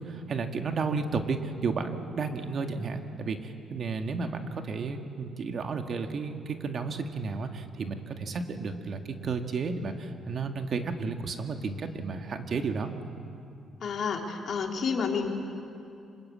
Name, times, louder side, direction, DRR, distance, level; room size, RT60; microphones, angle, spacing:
voice 1, 0.0-12.9, right 4 dB, 50° right, 5 dB, 1.9 m, -32 dB
voice 2, 13.8-15.3, left 5 dB, 60° left, 2 dB, 3.2 m, -30 dB
26.0 x 20.5 x 8.6 m, 2.5 s
cardioid pair, 90°, 0 cm